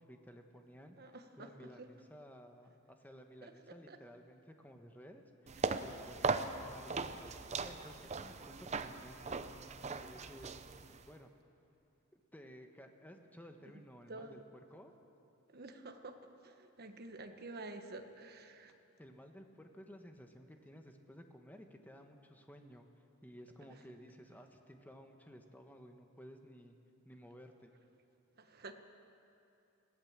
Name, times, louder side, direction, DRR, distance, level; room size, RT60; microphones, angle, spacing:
voice 1, 0.0-9.6 9.9-10.6 11.1-11.3 12.1-14.4 14.7-14.9 19.0-22.9 23.2-26.7 27.0-27.7, equal, 10° left, 4 dB, 1.3 m, -55 dB
voice 2, 1.0-1.9 3.4-3.5 3.9-4.0 13.7-13.8 14.1-14.4 15.5-18.7 28.4-28.7, right 2 dB, 50° right, 6 dB, 1.4 m, -50 dB
sound 1, 5.5-11.1, right 4 dB, 35° right, 0.7 m, -39 dB
22.0 x 16.0 x 7.4 m, 2.7 s
head